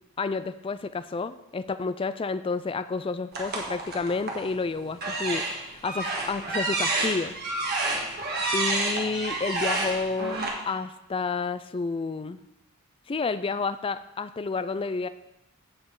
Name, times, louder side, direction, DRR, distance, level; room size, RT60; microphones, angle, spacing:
voice 1, 0.2-7.3 8.2-12.4 13.1-15.1, left 4 dB, 25° left, 13 dB, 0.3 m, -30 dB
sound 1, 3.3-4.5 4.9-10.5, right 2 dB, 45° right, 1.6 m, -29 dB
15.5 x 5.3 x 3.8 m, 0.92 s
head